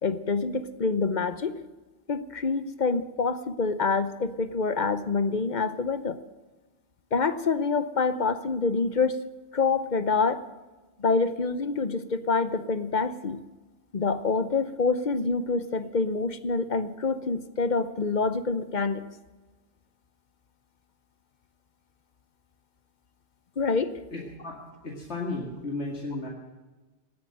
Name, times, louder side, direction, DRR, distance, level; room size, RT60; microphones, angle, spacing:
voice 1, 0.0-1.5 2.1-6.2 7.1-9.2 9.5-10.4 11.0-13.4 13.9-19.0 23.6-24.0, left 4 dB, 45° left, 13 dB, 0.9 m, -26 dB
voice 2, 24.1-26.3, left 2 dB, 80° left, -1 dB, 2.5 m, -34 dB
17.5 x 9.5 x 7.8 m, 1.2 s
omnidirectional pair, 1.1 m